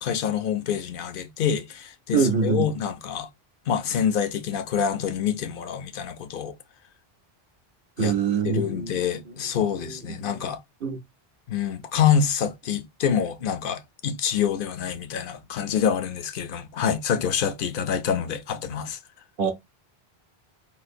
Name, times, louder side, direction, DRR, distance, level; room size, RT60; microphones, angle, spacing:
voice 1, 0.0-3.3 3.7-6.5 8.0-8.1 8.4-10.6 11.5-19.0, left 8 dB, 65° left, 0.7 m, -26 dB
voice 2, 2.1-2.6 8.0-9.0 9.6-9.9 10.2-10.4 10.8-11.0 19.4-19.5, right 6 dB, 65° right, 0.7 m, -25 dB
3.7 x 2.4 x 2.5 m
omnidirectional pair, 1.0 m